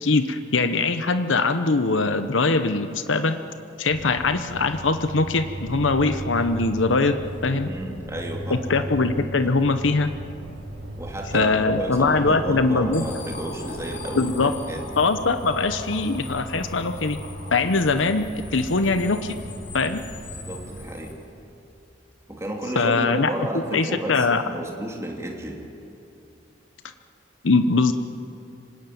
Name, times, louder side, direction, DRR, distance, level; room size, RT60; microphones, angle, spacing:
voice 1, 0.0-3.4 3.8-7.7 8.5-10.1 11.3-13.0 14.1-14.5 15.0-17.2 17.5-19.4 19.7-20.0 22.8-23.3 23.7-24.4 27.4-27.9, left 3 dB, 90° left, 9 dB, 0.9 m, -22 dB
sound 1, 3.9-20.9, equal, 80° right, 5.1 m, -37 dB
voice 2, 7.5-8.8 9.4-9.5 11.0-14.9 20.5-21.2 22.3-25.7, right 1 dB, 15° right, 1 dB, 2.8 m, -32 dB
sound 2, 11.7-17.7, left 2 dB, 45° left, 2.9 m, -43 dB
sound 3, 12.9-21.1, left 5 dB, 65° left, 3.3 m, -44 dB
25.5 x 17.5 x 9.4 m, 2.7 s
head